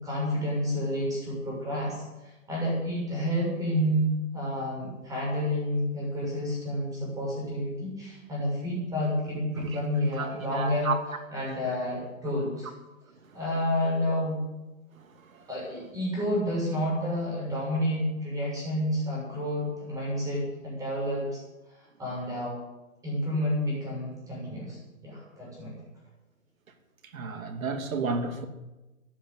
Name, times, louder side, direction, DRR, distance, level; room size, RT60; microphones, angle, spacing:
voice 1, 0.0-4.1 4.3-10.9 11.3-12.7 13.3-14.4 15.5-21.4 21.7-22.6 23.0-24.8 25.0-25.7, equal, 10° right, 7.2 m, -30 dB
voice 2, 9.6-11.2 13.0-13.4 14.9-15.5 27.0-28.5, right 4 dB, 75° right, 2.9 m, -33 dB
15.0 x 10.0 x 8.2 m
hypercardioid pair, 165°, 42 cm